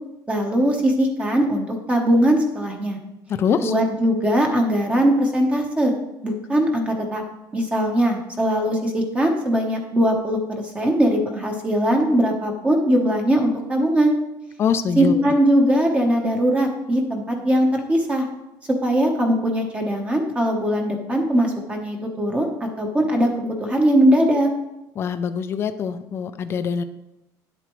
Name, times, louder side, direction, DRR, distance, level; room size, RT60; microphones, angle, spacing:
voice 1, 0.3-3.0 3.6-5.9 6.2-7.2 7.5-14.1 15.0-18.3 18.8-24.5, equal, 15° right, 1 dB, 0.9 m, -20 dB
voice 2, 3.3-3.7 14.6-15.2 25.0-26.8, left 7 dB, 30° left, 10 dB, 0.4 m, -23 dB
10.0 x 8.0 x 3.1 m, 0.94 s
cardioid pair, 170°, 8 cm